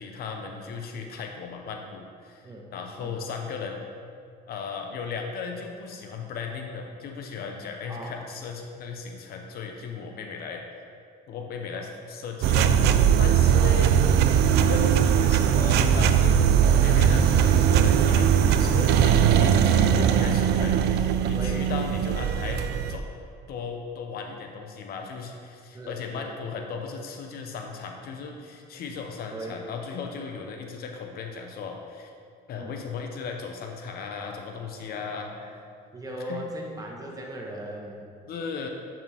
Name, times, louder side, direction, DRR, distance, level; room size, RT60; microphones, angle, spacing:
voice 1, 0.0-3.8 4.5-10.6 11.3-12.7 13.2-13.9 14.6-23.1 23.5-32.1 32.5-35.3 36.3-36.4 38.3-38.7, left 5 dB, 65° left, 3 dB, 0.9 m, -36 dB
voice 2, 7.9-8.2 13.5-13.9 21.3-21.7 25.7-26.3 29.3-29.6 32.5-32.8 35.4-35.5 35.9-38.1, right 1 dB, 20° right, -1 dB, 1.3 m, -38 dB
sound 1, 12.4-23.0, right 8 dB, 80° right, 0.5 m, -20 dB
9.1 x 5.8 x 3.5 m, 2.2 s
cardioid pair, 110°, 17 cm